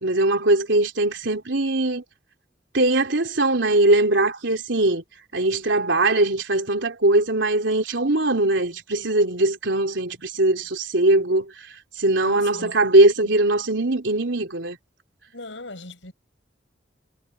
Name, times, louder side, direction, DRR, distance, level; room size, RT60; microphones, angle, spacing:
voice 1, 0.0-2.0 2.7-5.0 5.3-11.5 12.0-14.8, right 2 dB, 75° right, 3.6 m, -20 dB
voice 2, 12.2-12.8 13.2-13.3 15.3-16.1, left 2 dB, 80° left, 7.0 m, -39 dB
head